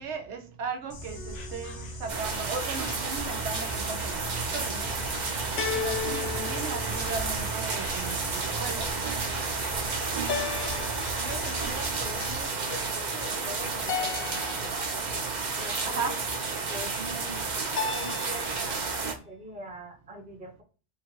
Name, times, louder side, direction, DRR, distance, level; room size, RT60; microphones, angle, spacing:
voice 1, 0.0-4.9 5.6-8.9 15.8-16.2, right 5 dB, 75° right, 0.9 m, -37 dB
Insect, 0.9-12.4, equal, 80° left, 1.1 m, -39 dB
sound 1, 1.2-1.8 5.6-7.6 10.3-11.7 13.9-15.1 17.8-18.7, left 7 dB, 65° left, 0.7 m, -35 dB
sound 2, 2.1-19.1, right 4 dB, 45° right, 0.7 m, -31 dB
voice 2, 11.1-15.0 15.5-16.2 16.7-17.5 17.9-20.6, equal, 10° right, 0.6 m, -43 dB
3.7 x 2.3 x 2.9 m
omnidirectional pair, 1.2 m